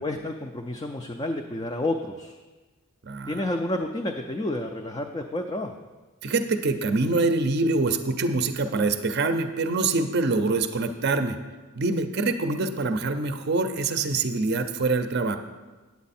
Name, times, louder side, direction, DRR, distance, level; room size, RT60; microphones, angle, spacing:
voice 1, 0.0-2.4 3.3-5.7, left 1 dB, 20° left, 3 dB, 0.4 m, -30 dB
voice 2, 3.1-3.4 6.2-11.4 11.8-15.4, right 3 dB, 45° right, 8 dB, 0.5 m, -25 dB
8.8 x 8.3 x 4.2 m, 1.2 s
head